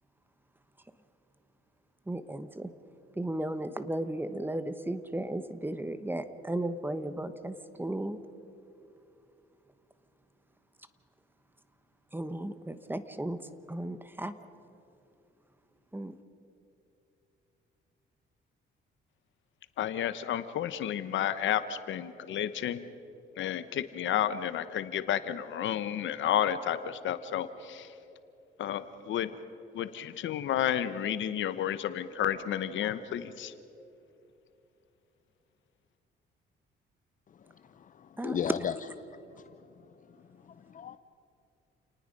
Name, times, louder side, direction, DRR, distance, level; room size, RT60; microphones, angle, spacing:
voice 1, 2.1-2.7 3.2-8.2 12.1-14.4 15.9-16.1 38.2-38.4, right 1 dB, 10° right, 11 dB, 1.1 m, -35 dB
voice 2, 19.8-22.8 23.4-27.9 28.6-29.3 29.7-33.5, left 10 dB, 75° left, 12 dB, 1.0 m, -31 dB
voice 3, 37.6-38.7 39.1-39.6 40.4-41.0, left 8 dB, 40° left, 11 dB, 0.6 m, -36 dB
29.0 x 19.0 x 5.4 m, 2.8 s
cardioid pair, 90°, 20 cm